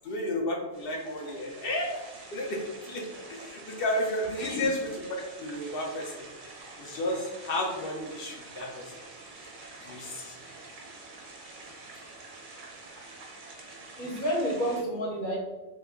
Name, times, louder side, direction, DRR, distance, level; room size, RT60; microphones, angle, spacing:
voice 1, 0.0-2.0 2.3-6.2 6.8-8.9 9.8-10.4, left 1 dB, 65° left, 1 dB, 0.6 m, -32 dB
sound 1, 0.7-14.8, right 3 dB, 50° right, 0.6 m, -47 dB
voice 2, 14.0-15.4, equal, 45° left, -2 dB, 0.9 m, -29 dB
3.0 x 2.3 x 3.5 m, 1.1 s
omnidirectional pair, 1.4 m